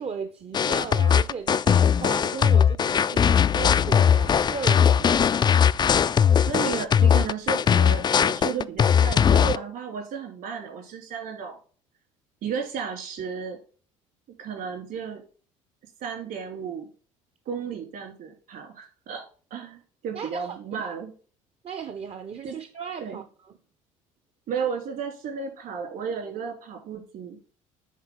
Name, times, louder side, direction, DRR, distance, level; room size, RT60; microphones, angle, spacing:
voice 1, 0.0-5.3 20.1-20.9 21.6-23.5, right 6 dB, 35° right, 0.8 m, -36 dB
sound 1, 0.5-9.6, left 8 dB, 25° left, 0.4 m, -20 dB
voice 2, 6.5-11.5 12.4-13.6 14.4-15.2 16.0-16.9 17.4-19.2 19.5-21.1 22.4-22.5 23.0-23.2 24.5-27.4, right 6 dB, 60° right, 3.4 m, -33 dB
10.0 x 4.1 x 3.8 m
hypercardioid pair, 60°, 17 cm